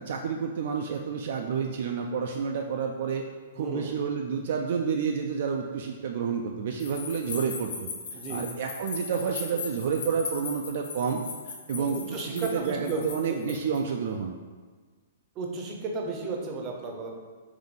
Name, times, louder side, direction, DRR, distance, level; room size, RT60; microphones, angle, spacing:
voice 1, 0.0-3.2 3.5-11.2 11.5-14.4, right 6 dB, 60° right, 2 dB, 0.3 m, -30 dB
voice 2, 3.6-3.9 8.1-8.5 11.7-13.0 13.5-13.6 15.4-17.1, right 3 dB, 30° right, 1 dB, 0.6 m, -34 dB
sound 1, 6.8-13.8, left 5 dB, 65° left, 0.7 m, -39 dB
3.9 x 2.6 x 3.6 m, 1.4 s
hypercardioid pair, 135°, 0 cm